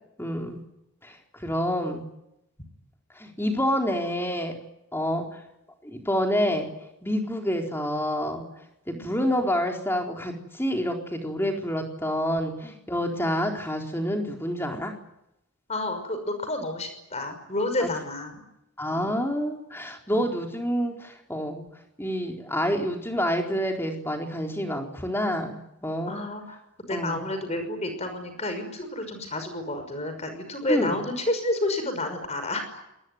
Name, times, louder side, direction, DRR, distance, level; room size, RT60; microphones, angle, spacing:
voice 1, 0.2-0.6 1.0-2.0 3.2-4.5 4.9-5.3 5.8-6.7 7.0-8.5 8.9-14.9 17.8-17.9 18.8-21.7 22.0-26.2 26.9-27.2 30.7-30.9, equal, 10° left, 2 dB, 4.0 m, -28 dB
voice 2, 8.9-9.2 15.7-18.4 18.9-19.1 20.1-20.2 26.1-26.6 26.9-32.8, left 2 dB, 30° left, 7 dB, 5.7 m, -30 dB
26.5 x 20.5 x 9.5 m, 0.84 s
head